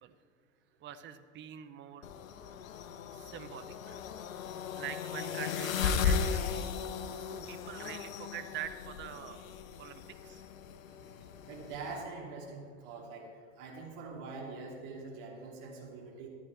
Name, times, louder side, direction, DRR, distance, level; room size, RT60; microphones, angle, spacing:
voice 1, 0.8-2.1 3.1-4.0 4.8-6.7 7.3-9.5 9.8-10.4, right 10 dB, 30° right, 11 dB, 0.7 m, -45 dB
sound 1, 2.0-12.0, left 6 dB, 85° left, 0.8 m, -36 dB
voice 2, 11.5-13.3 13.6-16.3, right 4 dB, 50° right, -1 dB, 2.7 m, -44 dB
14.0 x 10.5 x 3.3 m, 2.1 s
hypercardioid pair, 95°, 40 cm